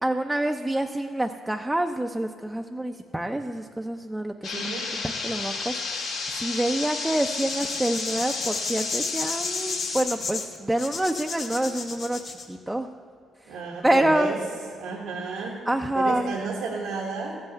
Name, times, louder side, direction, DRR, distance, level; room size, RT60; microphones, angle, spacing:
voice 1, 0.0-4.7 5.0-12.9 13.4-13.6 13.8-14.3 15.7-16.4, right 1 dB, 10° right, 3 dB, 0.5 m, -27 dB
sound 1, 4.4-10.0, left 4 dB, 85° left, 2.1 m, -31 dB
voice 2, 4.5-4.9 13.5-14.4 14.8-15.6 15.9-17.3, right 4 dB, 90° right, -2 dB, 1.2 m, -32 dB
sound 2, 7.2-12.5, left 5 dB, 65° left, 1.5 m, -33 dB
14.0 x 5.6 x 8.1 m, 2.2 s
cardioid pair, 90°, 0 cm